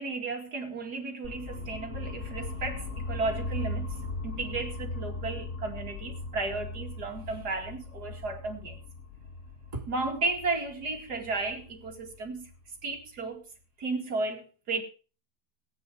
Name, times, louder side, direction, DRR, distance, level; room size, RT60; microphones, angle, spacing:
voice 1, 0.0-4.0 4.2-8.8 9.7-12.5 12.8-13.4 13.8-14.8, right 3 dB, 70° right, 3 dB, 2.8 m, -34 dB
sound 1, 1.2-13.2, left 2 dB, 45° left, 1.9 m, -39 dB
18.0 x 9.3 x 4.8 m, 0.38 s
omnidirectional pair, 1.8 m